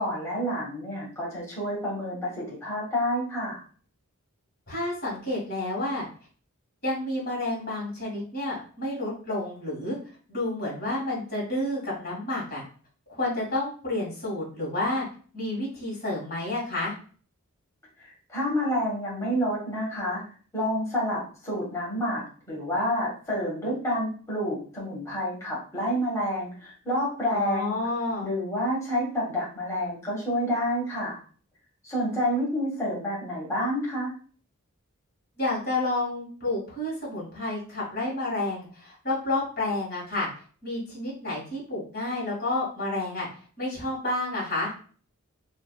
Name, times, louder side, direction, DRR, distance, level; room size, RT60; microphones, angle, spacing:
voice 1, 0.0-3.6 18.0-20.2 20.5-27.8 28.2-31.2 31.8-34.1, equal, 15° left, -6 dB, 1.3 m, -29 dB
voice 2, 4.7-6.1 6.8-10.0 10.3-12.6 13.1-15.1 15.3-16.9 27.3-28.3 35.4-40.3 40.6-43.3 43.6-44.7, left 2 dB, 45° left, -4 dB, 1.9 m, -30 dB
5.8 x 2.4 x 2.3 m, 0.43 s
head